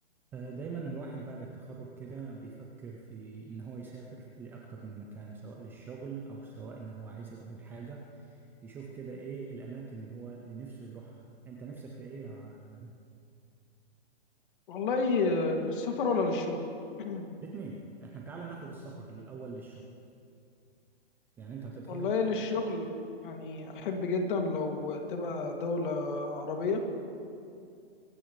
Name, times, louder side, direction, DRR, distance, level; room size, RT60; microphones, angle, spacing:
voice 1, 0.3-12.9 17.4-19.9 21.4-22.1, right 4 dB, 5° right, -1 dB, 0.4 m, -43 dB
voice 2, 14.7-16.7 17.0-17.3 21.9-22.9 23.2-26.8, left 3 dB, 50° left, 3 dB, 2.2 m, -30 dB
23.5 x 16.0 x 3.1 m, 2.5 s
hypercardioid pair, 140°, 33 cm